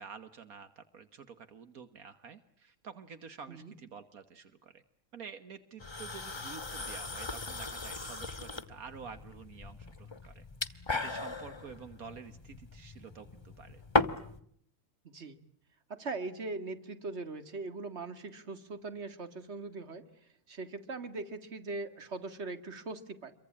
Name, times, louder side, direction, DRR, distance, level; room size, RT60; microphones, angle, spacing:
voice 1, 0.0-4.8 5.1-13.8, right 6 dB, 75° right, 10 dB, 1.8 m, -49 dB
sound 1, 5.8-14.4, left 3 dB, 20° left, 1.2 m, -37 dB
voice 2, 15.9-20.1 20.5-23.3, right 3 dB, 50° right, 10 dB, 2.3 m, -40 dB
28.0 x 23.5 x 8.6 m, 0.68 s
omnidirectional pair, 1.5 m